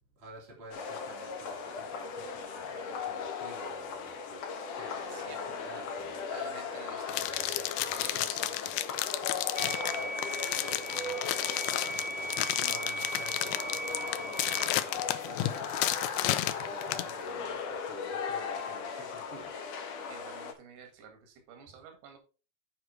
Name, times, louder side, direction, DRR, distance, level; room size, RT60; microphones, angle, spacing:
voice 1, 0.2-4.5 4.7-6.2 9.4-11.2 12.0-19.5, right 2 dB, 20° right, -1 dB, 2.3 m, -50 dB
sound 1, 0.7-20.5, left 5 dB, 70° left, 1.6 m, -38 dB
voice 2, 5.1-5.4 6.3-8.8 11.8-12.1 20.1-22.2, right 6 dB, 85° right, 5 dB, 3.9 m, -50 dB
sound 2, 7.1-17.1, left 15 dB, 90° left, 2.6 m, -32 dB
sound 3, 9.6-14.6, right 1 dB, 50° right, 0.8 m, -38 dB
9.1 x 5.0 x 4.4 m, 0.35 s
omnidirectional pair, 4.6 m